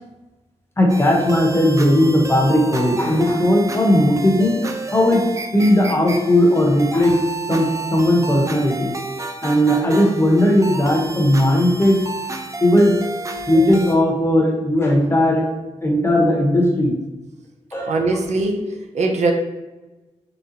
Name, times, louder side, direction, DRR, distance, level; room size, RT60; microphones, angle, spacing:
voice 1, 0.8-4.6 4.9-5.2 5.5-7.2 7.5-8.9 9.4-12.1 12.6-12.9 13.5-15.5 15.8-16.9 17.7-17.9, left 1 dB, 20° left, 0 dB, 0.9 m, -17 dB
sound 1, 0.9-14.0, right 2 dB, 25° right, 0.4 m, -31 dB
voice 2, 17.9-18.7 18.9-19.3, right 3 dB, 70° right, 3 dB, 0.6 m, -20 dB
3.9 x 3.5 x 2.8 m, 1.1 s
wide cardioid pair, 95°, 12 cm